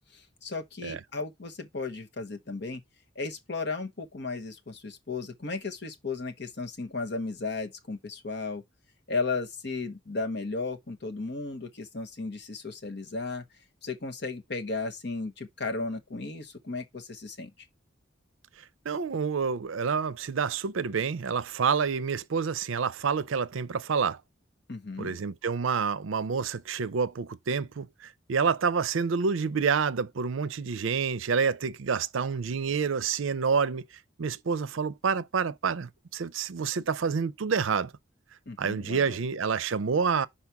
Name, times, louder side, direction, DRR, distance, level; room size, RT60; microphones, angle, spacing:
voice 1, 0.1-2.8 3.1-8.6 9.1-13.4 13.8-17.5 24.7-25.2 38.5-39.2, left 3 dB, 55° left, 1.1 m, -35 dB
voice 2, 18.9-24.2 25.0-27.9 28.3-33.9 34.2-37.9 38.6-40.3, right 5 dB, 80° right, 0.5 m, -28 dB
5.9 x 4.3 x 4.7 m
head